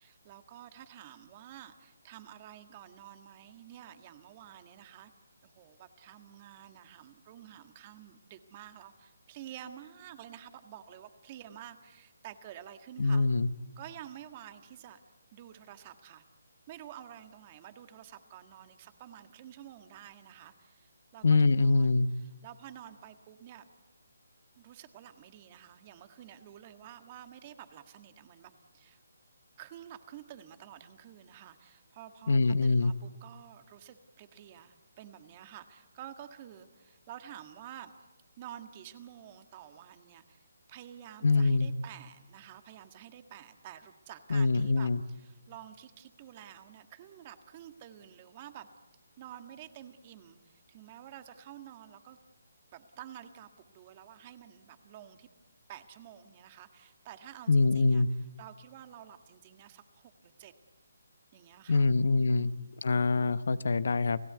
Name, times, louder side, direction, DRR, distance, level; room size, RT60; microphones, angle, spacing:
voice 1, 0.0-5.1 5.4-13.3 13.8-15.0 15.3-16.2 16.7-23.6 24.6-29.0 29.6-38.1 38.4-48.7 49.2-52.2 52.7-55.3 55.7-60.5 61.3-61.9 62.2-62.7, right 11 dB, 30° right, 8 dB, 1.7 m, -50 dB
voice 2, 13.0-13.5 21.2-22.1 32.3-32.9 41.2-41.7 44.3-45.0 57.5-58.1 61.7-62.5 62.8-64.2, left 3 dB, 65° left, 15 dB, 0.9 m, -24 dB
30.0 x 16.5 x 8.1 m, 1.2 s
figure-of-eight pair, 155°, 0 cm